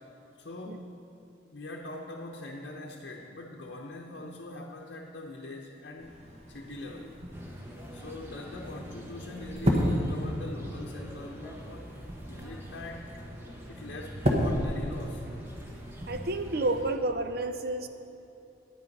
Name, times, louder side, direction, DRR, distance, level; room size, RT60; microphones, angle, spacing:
voice 1, 0.4-0.9 1.5-6.2 6.5-7.2 7.9-13.1 13.7-15.2, left 2 dB, 65° left, -1 dB, 0.8 m, -42 dB
sound 1, 6.0-16.8, equal, 35° right, 1.2 m, -34 dB
sound 2, 7.3-17.0, right 1 dB, 10° right, 0.9 m, -45 dB
voice 2, 16.1-17.9, right 2 dB, 55° right, 8 dB, 0.6 m, -30 dB
9.8 x 8.5 x 5.3 m, 2.9 s
head